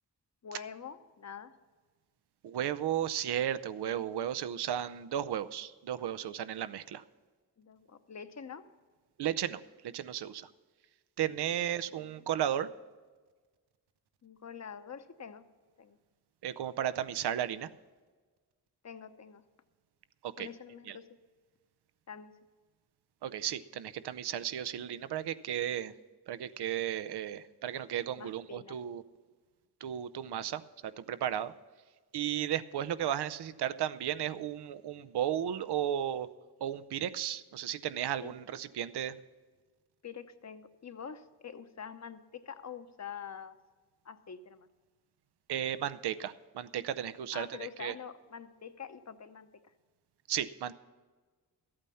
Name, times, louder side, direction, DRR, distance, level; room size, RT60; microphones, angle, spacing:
voice 1, 0.4-1.5 7.6-8.6 11.9-12.3 14.2-15.4 15.8-16.0 18.8-19.4 20.4-21.1 22.1-22.3 28.2-28.8 38.2-38.3 40.0-43.6 44.0-44.7 47.3-49.5, left 7 dB, 45° left, 10 dB, 0.9 m, -46 dB
voice 2, 2.4-7.0 9.2-9.6 9.9-10.5 11.2-12.7 16.4-17.7 20.2-20.5 20.9-21.0 23.2-25.9 26.3-29.0 29.8-31.5 32.1-36.3 36.6-39.2 45.5-47.5 47.8-47.9 50.3-50.7, right 10 dB, 85° right, 14 dB, 0.6 m, -34 dB
14.0 x 8.8 x 5.6 m, 1.4 s
cardioid pair, 75°, 39 cm